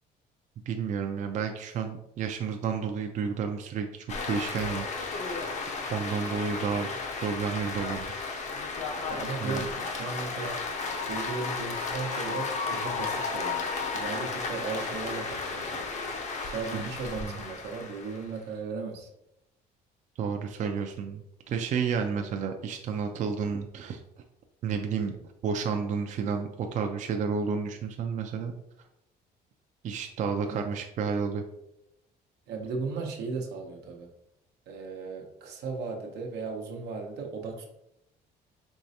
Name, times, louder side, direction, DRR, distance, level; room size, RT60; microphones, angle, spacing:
voice 1, 0.7-5.3 5.9-6.9 7.2-8.1 9.4-9.6 16.7-16.9 17.2-17.4 20.2-24.0 24.6-25.1 25.4-28.5 29.8-31.4, right 6 dB, 45° right, 4 dB, 0.4 m, -31 dB
sound 1, 4.1-18.4, left 4 dB, 45° left, 0.6 m, -34 dB
voice 2, 9.1-10.6 11.1-13.7 13.9-19.1 30.5-30.7 32.5-34.1 34.7-37.7, right 4 dB, 85° right, 2 dB, 0.8 m, -36 dB
4.6 x 3.1 x 2.7 m, 0.84 s
cardioid pair, 110°, 17 cm